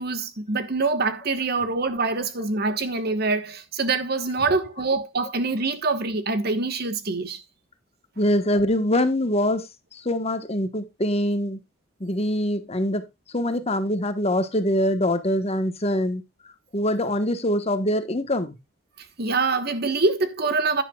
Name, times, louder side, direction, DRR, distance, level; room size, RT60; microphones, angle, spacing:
voice 1, 0.0-7.4 19.2-20.8, right 3 dB, 50° right, 1.3 m, -25 dB
voice 2, 8.2-11.6 12.0-16.2 16.7-18.6, left 1 dB, 30° left, 1.2 m, -24 dB
11.0 x 10.0 x 2.3 m
head